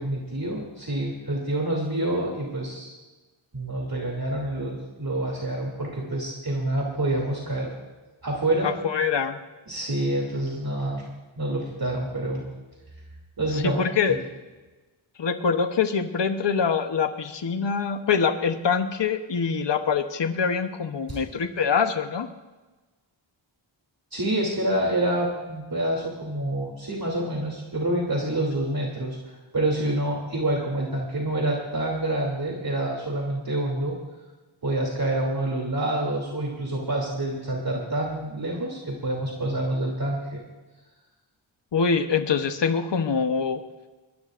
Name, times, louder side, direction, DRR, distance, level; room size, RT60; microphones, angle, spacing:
voice 1, 0.0-2.9 3.5-7.7 8.2-8.7 9.7-11.0 11.4-12.4 13.4-14.2 21.1-21.2 24.1-34.0 34.6-40.4, right 1 dB, 45° right, -2 dB, 3.0 m, -27 dB
voice 2, 8.6-9.4 13.5-14.2 15.2-22.3 41.7-43.6, left 6 dB, 60° left, 7 dB, 1.0 m, -24 dB
22.0 x 20.5 x 2.6 m, 1.2 s
wide cardioid pair, 60°, 48 cm